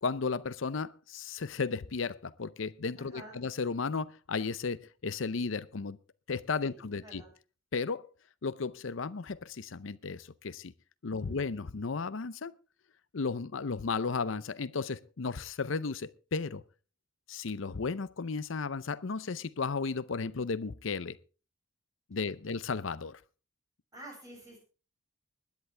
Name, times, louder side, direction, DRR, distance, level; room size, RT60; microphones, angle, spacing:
voice 1, 0.0-6.0 6.3-7.2 7.7-8.1 8.4-10.7 11.0-12.5 13.1-16.6 17.3-21.2 22.1-23.2, left 4 dB, 75° left, 0.6 m, -34 dB
voice 2, 2.9-3.4 6.6-7.3 11.0-11.4 23.9-24.6, right 1 dB, 20° right, 7.9 m, -50 dB
21.0 x 10.5 x 3.4 m
head